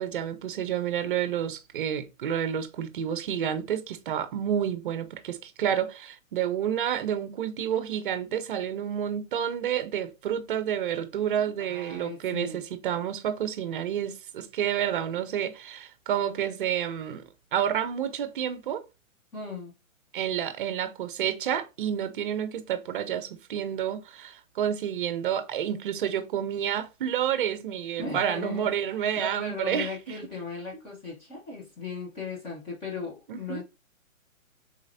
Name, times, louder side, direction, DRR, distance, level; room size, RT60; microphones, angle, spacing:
voice 1, 0.0-17.2 17.5-18.8 20.1-29.9 33.3-33.6, right 9 dB, 40° right, 0.8 m, -29 dB
voice 2, 11.4-12.6 19.3-19.7 28.0-28.7 29.2-33.6, left 3 dB, 15° left, 1.1 m, -37 dB
4.7 x 4.2 x 2.7 m
hypercardioid pair, 150°, 40 cm